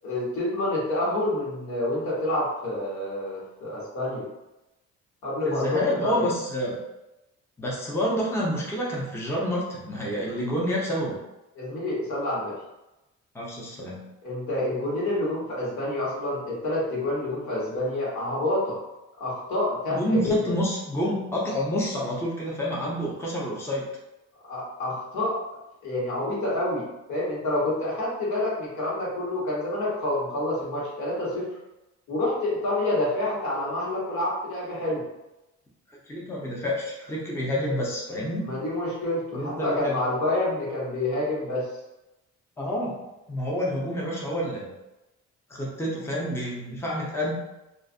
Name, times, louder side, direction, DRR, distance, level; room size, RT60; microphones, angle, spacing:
voice 1, 0.0-4.3 5.2-6.2 11.5-12.5 14.2-18.8 19.2-20.4 24.5-25.4 25.8-31.5 32.1-35.0 38.4-41.7, left 1 dB, 70° left, -6 dB, 1.3 m, -28 dB
voice 2, 5.5-6.8 7.6-11.2 13.3-14.1 19.9-23.9 36.1-38.5 39.3-40.0 42.6-44.7 45.5-47.3, equal, 10° left, -4 dB, 0.6 m, -28 dB
2.4 x 2.4 x 2.5 m, 0.97 s
cardioid pair, 90°, 30 cm